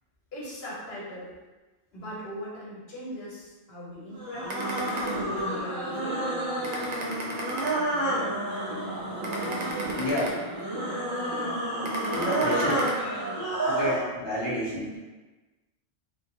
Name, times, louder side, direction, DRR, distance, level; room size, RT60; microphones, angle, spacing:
voice 1, 0.3-1.3 1.9-6.2, equal, 70° left, -6 dB, 1.1 m, -40 dB
sound 1, 4.2-14.1, right 1 dB, 25° right, 0.7 m, -30 dB
sound 2, 4.5-5.7 6.1-6.3 6.6-8.3 8.7-8.9 9.2-10.9 11.3-11.5 11.8-12.9, right 1 dB, 60° right, 0.4 m, -36 dB
voice 2, 10.0-10.4 12.1-12.8 13.7-15.0, equal, 30° left, -8 dB, 0.7 m, -29 dB
2.3 x 2.0 x 2.8 m, 1.2 s
omnidirectional pair, 1.1 m